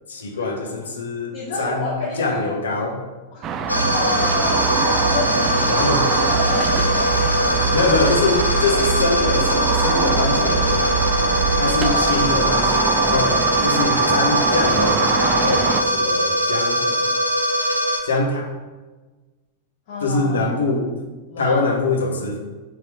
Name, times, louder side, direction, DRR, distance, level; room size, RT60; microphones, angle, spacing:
voice 1, 0.1-3.0 5.7-6.1 7.7-11.1 11.6-17.1 18.0-18.5 20.0-20.9 21.4-22.4, left 3 dB, 70° left, 3 dB, 1.0 m, -23 dB
voice 2, 1.3-2.5 3.3-4.6 5.0-7.9 11.8-12.2 19.9-20.5 21.3-21.7, left 3 dB, 55° left, -5 dB, 1.4 m, -30 dB
sound 1, 3.4-15.8, right 6 dB, 35° right, 0.5 m, -25 dB
sound 2, 3.7-18.0, right 1 dB, 85° left, 0.6 m, -20 dB
sound 3, 6.5-13.9, right 1 dB, 10° left, 1.1 m, -35 dB
6.1 x 4.5 x 4.9 m, 1.3 s
figure-of-eight pair, 90°, 0 cm